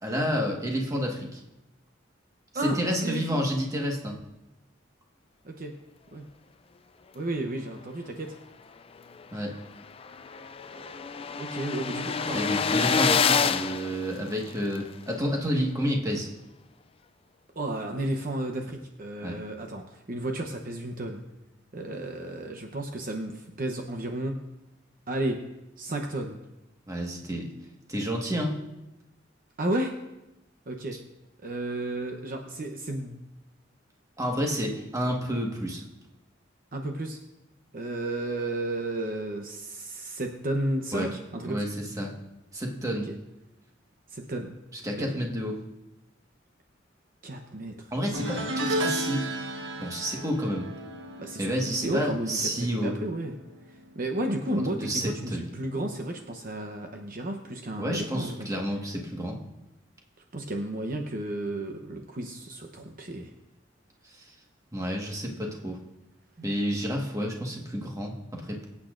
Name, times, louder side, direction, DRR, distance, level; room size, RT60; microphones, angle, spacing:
voice 1, 0.0-1.4 2.6-4.2 9.3-9.5 12.2-16.3 19.2-19.3 26.9-27.5 27.9-28.6 34.2-35.8 40.9-41.1 41.4-42.1 42.5-43.1 44.8-45.6 47.9-49.2 49.8-50.7 51.4-52.9 54.5-55.4 57.8-59.4 64.7-65.8 66.4-68.6, equal, 20° right, 0 dB, 1.5 m, -30 dB
voice 2, 2.5-3.4 5.4-5.7 6.1-6.2 7.1-8.3 10.7-12.4 12.8-13.1 17.6-21.2 21.7-24.4 25.1-25.4 25.8-26.4 29.6-29.9 30.7-31.0 31.4-33.2 34.5-34.6 36.7-37.2 37.7-41.6 43.0-43.2 44.1-44.5 45.0-45.2 47.2-47.9 51.2-51.5 51.7-53.3 53.9-58.5 60.3-63.3, right 1 dB, 50° right, 3 dB, 0.9 m, -33 dB
sound 1, 9.2-9.3 9.6-9.7 9.9-14.8, left 6 dB, 30° left, 0.4 m, -27 dB
sound 2, 48.1-53.5 53.8-54.2 55.4-55.5, right 1 dB, 75° right, 1.5 m, -34 dB
23.5 x 8.5 x 2.6 m, 0.97 s
head